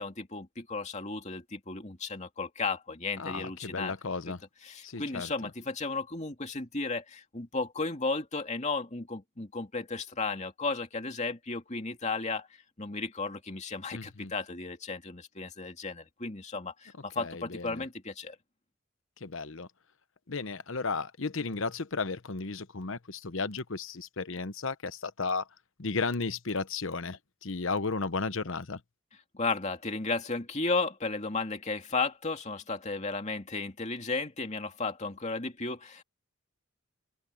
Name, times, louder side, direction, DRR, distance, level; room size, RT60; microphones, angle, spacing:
voice 1, 0.0-3.9 4.3-4.4 4.6-12.5 12.8-18.4 29.3-36.0, left 3 dB, 30° left, 2.5 m, -34 dB
voice 2, 3.2-4.4 4.8-5.5 13.9-14.3 17.2-17.8 19.2-19.7 20.3-25.5 25.8-28.8, left 4 dB, 60° left, 0.9 m, -34 dB
open air
head